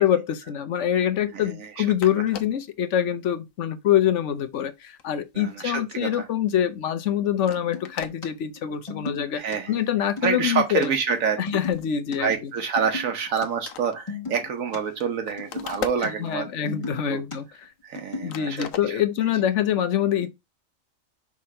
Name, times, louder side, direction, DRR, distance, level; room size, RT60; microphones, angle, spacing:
voice 1, 0.0-9.4 9.7-10.9 11.4-12.5 16.2-17.5 18.2-20.3, left 10 dB, 65° left, 1.0 m, -25 dB
voice 2, 1.3-1.9 2.1-2.2 5.3-6.3 9.3-9.8 10.2-11.4 12.2-16.7 17.1-17.2 17.8-19.0, right 6 dB, 85° right, 1.4 m, -27 dB
sound 1, 1.7-1.8 2.0-2.7 3.3-3.5 3.9-6.2 6.6-6.8 7.2-7.3 7.4-8.2 8.8-8.9 9.2-9.5 9.9-10.2 10.5-12.8 13.1-13.2 13.4-16.6 17.0-18.0 18.3-19.4, left 8 dB, 85° left, 1.2 m, -40 dB
sound 2, 4.5-4.6 7.6-8.3 8.6-9.6 9.9-10.9 11.1-12.2 12.6-13.5 13.7-14.8 15.1-16.1 16.3-17.4 18.0-18.4, left 4 dB, 25° left, 1.3 m, -36 dB
5.9 x 3.7 x 4.3 m
omnidirectional pair, 1.4 m